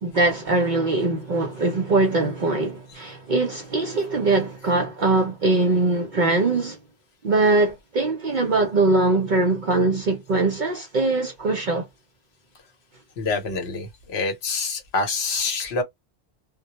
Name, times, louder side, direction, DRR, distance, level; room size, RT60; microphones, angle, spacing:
voice 1, 0.0-6.8 7.2-11.9, right 2 dB, 55° right, 0.5 m, -22 dB
voice 2, 13.2-15.8, left 4 dB, 65° left, 1.0 m, -26 dB
2.2 x 2.0 x 2.8 m
omnidirectional pair, 1.2 m